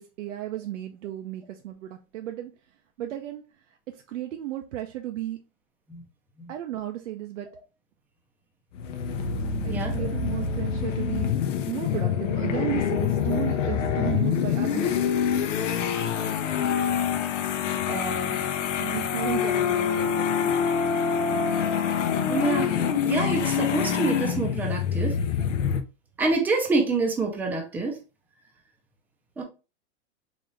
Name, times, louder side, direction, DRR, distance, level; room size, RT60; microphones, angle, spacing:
voice 1, 0.0-2.5 3.0-3.4 3.9-5.4 6.5-7.5 9.6-11.3 11.7-15.1 18.8-20.6 20.8-21.2, right 13 dB, 85° right, 0.6 m, -34 dB
sound 1, 8.7-25.8, left 7 dB, 90° left, 0.7 m, -26 dB
voice 2, 17.9-18.4 22.3-22.7 23.0-25.1 26.2-28.0 29.4-29.5, right 3 dB, 5° right, 0.4 m, -26 dB
4.0 x 2.5 x 3.0 m
supercardioid pair, 140°, 36 cm